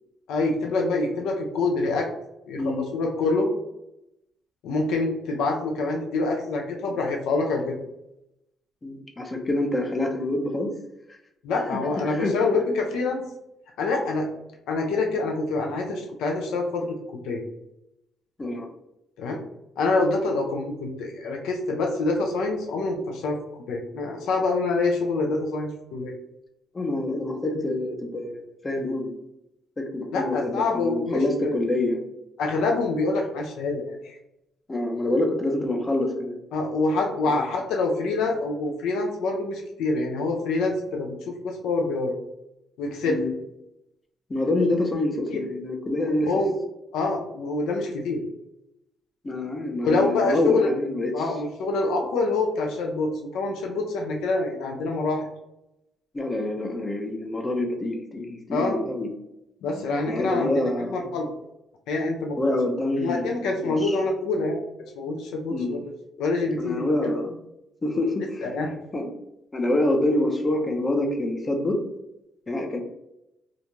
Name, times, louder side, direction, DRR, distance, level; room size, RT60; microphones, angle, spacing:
voice 1, 0.3-2.1 2.5-3.5 4.6-7.8 11.4-13.2 13.8-14.3 14.7-17.4 19.2-19.4 19.8-26.1 30.1-31.5 32.4-34.2 36.5-42.1 42.8-43.2 45.3-45.4 46.1-46.5 46.9-48.2 49.8-50.7 51.1-55.3 58.5-58.8 59.6-60.5 60.8-61.3 61.9-62.4 63.0-64.6 65.0-65.9 66.2-67.1 68.4-68.8, left 3 dB, 90° left, 2 dB, 0.4 m, -26 dB
voice 2, 2.6-2.9 8.8-10.7 11.6-11.8 12.1-12.3 18.4-18.7 26.7-29.1 29.8-32.0 34.7-36.4 37.3-37.4 43.1-43.3 44.3-46.3 49.2-51.1 56.1-59.1 60.1-61.1 62.4-64.0 65.5-65.8 66.6-67.4 67.8-68.5 68.9-69.1 69.5-71.8 72.5-72.8, left 1 dB, 25° left, 3 dB, 0.5 m, -26 dB
2.4 x 2.2 x 2.9 m, 0.86 s
cardioid pair, 90°, 0 cm